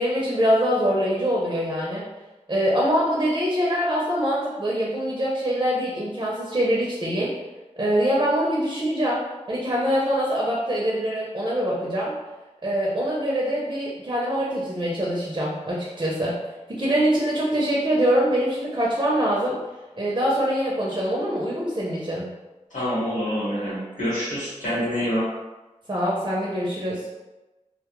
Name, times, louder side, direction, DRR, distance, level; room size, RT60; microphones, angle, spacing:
voice 1, 0.0-2.0 2.5-7.3 7.8-9.2 9.5-12.1 12.6-16.4 16.7-19.6 20.0-22.2 25.9-27.0, equal, 35° right, -5 dB, 0.6 m, -24 dB
voice 2, 22.7-25.3, equal, 85° left, -9 dB, 1.2 m, -26 dB
2.2 x 2.1 x 2.9 m, 1.1 s
wide cardioid pair, 55°, 13 cm